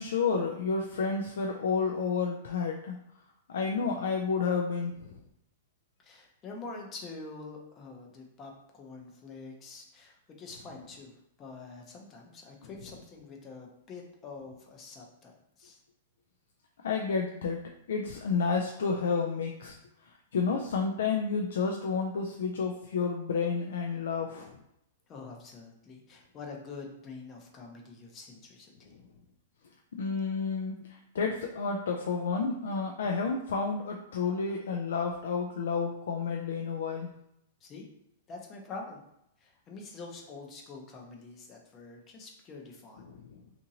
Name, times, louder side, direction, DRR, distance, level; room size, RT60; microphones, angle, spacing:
voice 1, 0.0-3.0 3.5-5.2 16.8-17.6 17.9-19.8 20.0-24.5 28.9-29.0 30.0-37.1 43.1-43.4, left 5 dB, 80° left, 1 dB, 0.3 m, -30 dB
voice 2, 6.0-15.8 25.1-29.0 37.6-37.9 38.3-39.0 39.4-43.1, left 3 dB, 25° left, 0 dB, 0.6 m, -46 dB
2.8 x 2.5 x 2.7 m, 0.80 s
hypercardioid pair, 145°, 0 cm